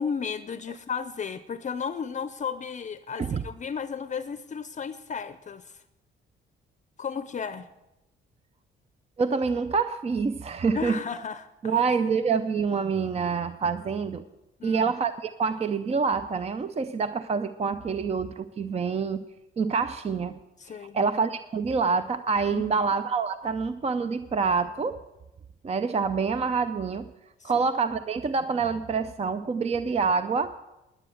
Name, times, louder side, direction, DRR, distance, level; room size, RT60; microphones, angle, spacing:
voice 1, 0.0-5.8 7.0-7.7 10.7-11.8 14.6-14.9 20.6-21.1 22.5-22.9 27.4-27.6, left 6 dB, 40° left, 12 dB, 0.6 m, -34 dB
voice 2, 9.2-11.0 11.6-14.2 14.6-19.2 19.6-20.4 20.7-25.0 25.6-27.1 27.4-30.5, right 5 dB, 30° right, 11 dB, 0.5 m, -26 dB
10.0 x 9.8 x 7.7 m, 0.96 s
cardioid pair, 90°, 20 cm